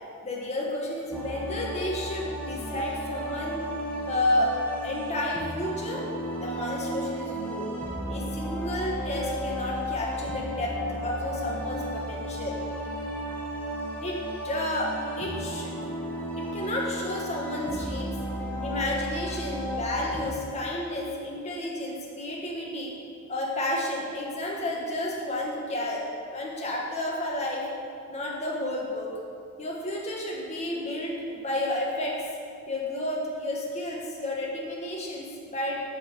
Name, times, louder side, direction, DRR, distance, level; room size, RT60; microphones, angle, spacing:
voice 1, 0.2-3.6 4.1-4.5 4.8-6.1 6.4-7.7 8.1-10.7 11.0-12.6 14.0-14.2 14.4-15.9 16.4-18.2 18.6-22.9 23.3-26.0 26.3-27.7 28.1-29.1 29.6-32.2 32.7-35.8, left 1 dB, 30° left, -3 dB, 1.0 m, -31 dB
sound 1, 1.1-20.4, equal, 5° left, 0.8 m, -34 dB
5.2 x 5.1 x 4.3 m, 2.3 s
head